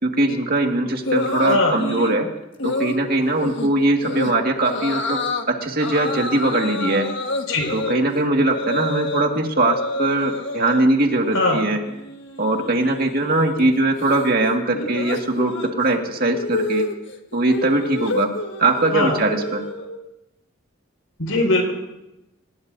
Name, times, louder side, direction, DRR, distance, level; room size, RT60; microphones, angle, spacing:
voice 1, 0.0-2.3 2.6-5.2 5.5-7.1 7.7-11.8 12.4-16.8 17.3-18.3 18.6-19.6, right 2 dB, 45° right, 2 dB, 1.9 m, -21 dB
sound 1, 1.0-2.2 2.6-3.0 3.4-3.7 4.0-4.3 4.6-5.4 5.8-9.3 9.5-10.8 11.2-11.6 11.8-20.0, left 2 dB, 55° left, 1.6 m, -29 dB
voice 2, 1.4-1.8 7.5-7.7 11.3-11.6 14.7-14.8 18.9-19.2 21.2-21.7, left 2 dB, 85° left, 1 dB, 5.3 m, -20 dB
26.5 x 19.5 x 2.7 m, 0.93 s
head